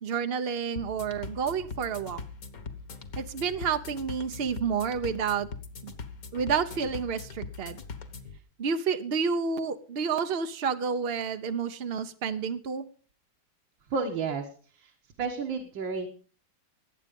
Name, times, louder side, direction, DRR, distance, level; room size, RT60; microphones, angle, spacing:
voice 1, 0.0-2.2 3.2-5.5 5.8-5.9 6.3-7.8 8.6-12.9, right 6 dB, 55° right, 8 dB, 0.6 m, -30 dB
sound 1, 0.8-8.4, left 4 dB, 50° left, 1.8 m, -41 dB
voice 2, 13.9-14.5 14.7-14.9 15.2-16.1, right 4 dB, 80° right, 3 dB, 2.2 m, -31 dB
20.0 x 8.8 x 5.3 m, 0.41 s
omnidirectional pair, 2.1 m